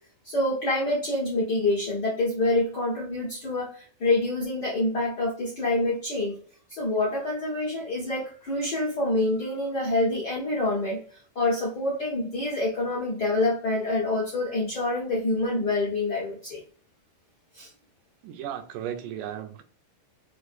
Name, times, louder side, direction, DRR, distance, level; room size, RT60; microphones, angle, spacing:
voice 1, 0.2-6.4 6.7-16.6 17.5-17.7, left 2 dB, 70° left, -6 dB, 0.9 m, -27 dB
voice 2, 18.2-19.6, right 10 dB, 80° right, 9 dB, 2.0 m, -35 dB
6.1 x 2.6 x 2.5 m, 0.44 s
omnidirectional pair, 3.8 m